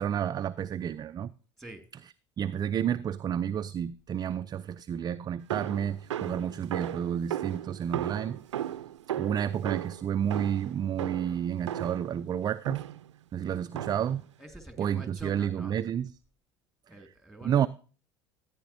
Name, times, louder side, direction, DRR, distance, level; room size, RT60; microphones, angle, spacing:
voice 1, 0.0-1.3 2.4-8.4 9.2-12.8 13.3-14.3 14.8-16.1 17.4-17.7, right 9 dB, 25° right, 0.4 m, -30 dB
sound 1, 5.5-12.1 12.6-13.1 13.7-14.2, right 11 dB, 80° right, 0.5 m, -36 dB
voice 2, 14.4-15.8 16.9-17.7, right 1 dB, ahead, 2.1 m, -46 dB
14.0 x 9.3 x 2.7 m
hypercardioid pair, 75°, 15 cm